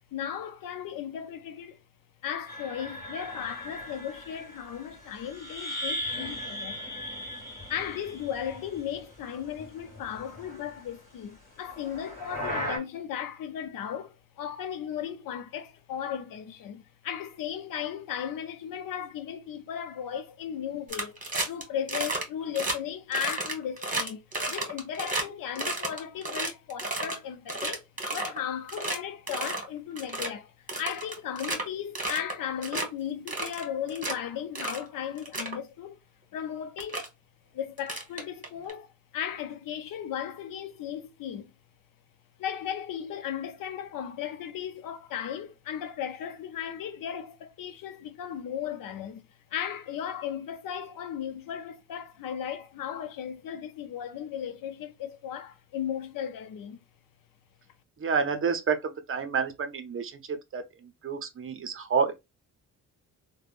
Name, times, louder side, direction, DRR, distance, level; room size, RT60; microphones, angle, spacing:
voice 1, 0.1-1.8 2.2-6.8 7.7-27.8 28.1-36.0 36.3-37.0 37.5-41.5 42.4-49.2 49.5-56.8, left 9 dB, 70° left, 0.6 m, -36 dB
sound 1, 2.5-9.2 9.4-10.8 11.7-12.8, equal, 25° left, 1.7 m, -38 dB
sound 2, 20.9-21.6 21.9-22.2 22.5-22.8 23.1-25.2 25.6-27.2 27.5-28.4 28.7-29.0 29.3-29.6 30.0-30.3 30.7-31.6 32.0-32.3 32.6-32.9 33.3-34.1 34.6-34.8 35.2-35.6 36.4-36.5 36.8-37.1 37.8-38.7, right 2 dB, 25° right, 1.2 m, -32 dB
voice 2, 58.0-62.1, right 5 dB, 40° right, 0.6 m, -29 dB
3.3 x 2.2 x 2.5 m
cardioid pair, 75°, 34 cm